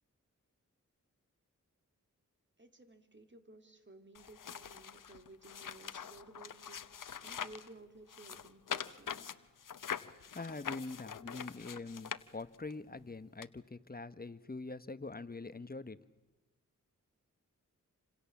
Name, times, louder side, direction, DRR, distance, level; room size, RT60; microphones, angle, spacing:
voice 1, 2.6-9.3, right 2 dB, 35° right, 7 dB, 3.4 m, -56 dB
sound 1, 4.1-7.7 8.1-12.7 13.4-13.5, left 7 dB, 80° left, 1.0 m, -44 dB
voice 2, 10.3-16.0, left 3 dB, 30° left, 13 dB, 1.3 m, -44 dB
29.0 x 26.5 x 7.3 m, 1.1 s
wide cardioid pair, 60°, 32 cm